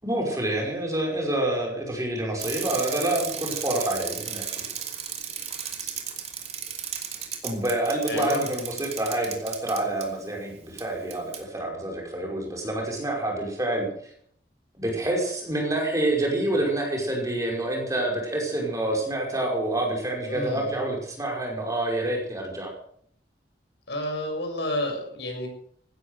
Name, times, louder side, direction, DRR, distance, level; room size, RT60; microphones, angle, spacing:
voice 1, 0.0-4.5 5.8-5.9 7.4-13.9 14.8-22.7, right 1 dB, 20° right, 0 dB, 5.4 m, -27 dB
Bicycle, 2.4-10.1 10.8-10.9 11.1-11.4, right 8 dB, 35° right, 2.6 m, -34 dB
voice 2, 8.1-8.4 16.5-16.6 20.3-20.7 23.9-25.5, left 1 dB, 70° left, 2 dB, 6.9 m, -30 dB
16.5 x 13.0 x 6.7 m, 0.63 s
head